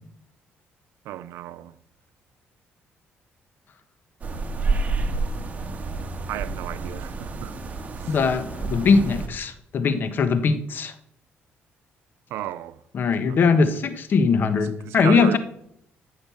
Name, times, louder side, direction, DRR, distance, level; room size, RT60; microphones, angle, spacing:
voice 1, 1.1-1.7 6.3-7.5 8.0-8.2 12.3-12.8 13.3-13.8 14.8-15.4, right 13 dB, 90° right, 0.6 m, -34 dB
sound 1, 4.2-9.3, right 3 dB, 35° right, 1.9 m, -29 dB
voice 2, 8.1-10.9 12.9-15.4, left 5 dB, 50° left, 1.3 m, -21 dB
13.5 x 6.6 x 7.1 m
cardioid pair, 105°, 4 cm